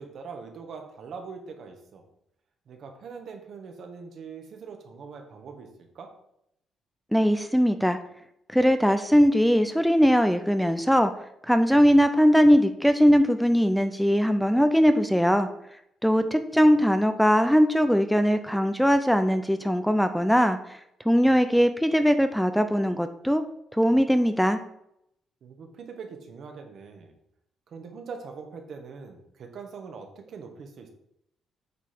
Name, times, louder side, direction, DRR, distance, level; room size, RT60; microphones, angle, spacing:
voice 1, 0.0-2.0 2.7-5.7 5.9-6.1 16.5-16.8 25.4-27.1 27.7-30.9, right 5 dB, 60° right, 4 dB, 1.5 m, -42 dB
voice 2, 7.1-8.0 8.5-11.1 11.5-15.5 16.0-20.8 21.1-23.4 23.7-24.6, equal, ahead, 9 dB, 0.5 m, -20 dB
8.2 x 3.2 x 5.9 m, 0.77 s
cardioid pair, 90°, 0 cm